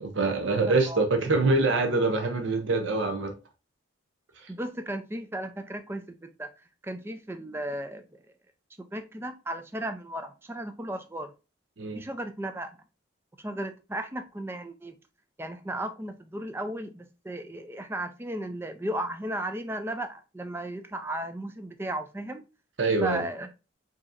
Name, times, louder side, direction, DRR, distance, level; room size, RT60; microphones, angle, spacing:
voice 1, 0.0-3.3 4.4-4.5 11.8-12.0 22.8-23.2, right 3 dB, 70° right, 0.7 m, -25 dB
voice 2, 0.7-1.0 4.5-8.2 8.8-11.3 11.9-12.8 13.4-14.9 15.4-22.4 23.0-23.5, right 1 dB, 10° right, 0.4 m, -35 dB
4.9 x 2.8 x 2.5 m
head